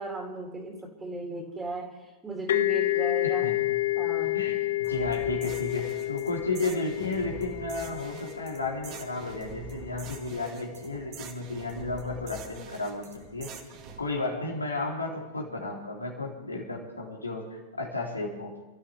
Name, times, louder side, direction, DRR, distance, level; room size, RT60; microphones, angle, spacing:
voice 1, 0.0-3.5 3.9-4.3, right 2 dB, 10° right, 1 dB, 3.3 m, -36 dB
sound 1, 2.5-10.0, left 17 dB, 60° left, 0.6 m, -30 dB
voice 2, 3.2-3.7 4.3-13.5 14.0-18.6, left 3 dB, 85° left, -1 dB, 3.6 m, -33 dB
sound 2, 4.8-14.0, right 4 dB, 40° right, 2.3 m, -44 dB
29.0 x 14.0 x 3.6 m, 1.1 s
figure-of-eight pair, 100°, 0 cm